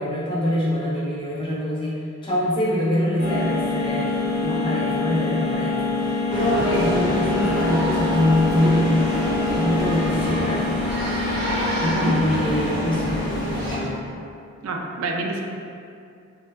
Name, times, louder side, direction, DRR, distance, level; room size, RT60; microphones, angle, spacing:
voice 1, 0.0-9.2 9.5-10.7 11.8-14.0, left 1 dB, 25° left, -7 dB, 0.4 m, -24 dB
sound 1, 3.2-14.0, left 3 dB, 65° left, 0.7 m, -26 dB
sound 2, 6.3-13.8, equal, 45° right, 0.8 m, -28 dB
voice 2, 11.8-12.1 14.6-15.5, right 2 dB, 80° right, 3 dB, 0.3 m, -27 dB
3.1 x 2.1 x 2.2 m, 2.4 s
head